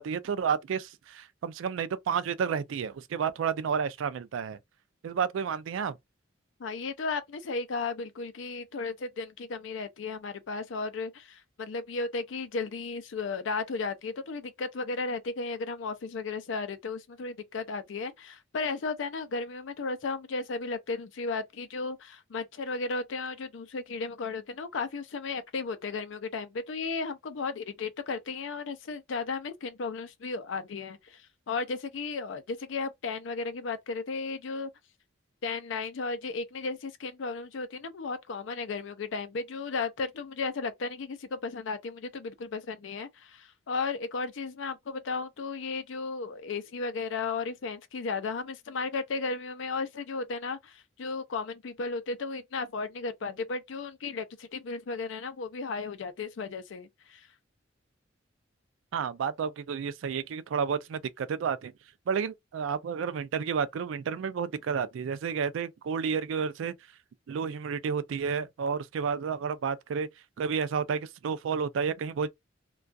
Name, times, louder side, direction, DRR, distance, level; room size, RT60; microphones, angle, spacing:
voice 1, 0.0-4.6 5.0-6.0 58.9-61.7 62.1-66.7 67.3-70.1 70.4-72.3, right 6 dB, 75° right, 0.3 m, -31 dB
voice 2, 6.6-34.7 35.4-57.3, left 4 dB, 70° left, 0.4 m, -34 dB
2.3 x 2.3 x 2.5 m
head